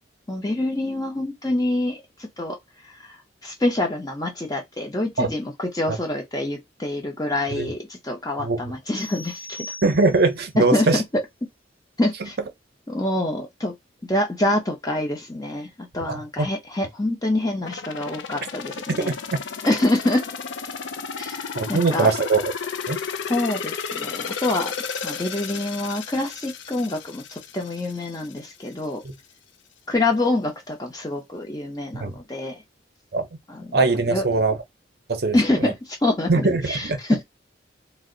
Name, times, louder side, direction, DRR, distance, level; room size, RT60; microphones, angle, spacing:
voice 1, 0.3-2.6 3.4-9.7 10.6-11.0 12.0-12.4 12.9-13.7 14.1-19.1 19.6-20.2 21.2-21.4 21.7-22.1 23.3-24.7 25.0-29.0 29.9-32.6 33.6-33.7 34.1-34.2 35.3-37.2, left 1 dB, 20° left, 0.8 m, -26 dB
voice 2, 8.4-8.7 9.8-11.0 16.1-16.5 19.1-19.4 21.5-22.5 22.9-23.0 29.0-29.1 31.9-32.1 33.1-33.2 33.7-34.6 35.1-35.7 36.3-37.0, right 3 dB, 55° right, 0.6 m, -22 dB
sound 1, 8.9-10.5, left 1 dB, 10° right, 0.4 m, -39 dB
sound 2, 17.6-28.4 28.8-28.9, left 6 dB, 80° left, 0.4 m, -33 dB
2.6 x 2.1 x 3.8 m
head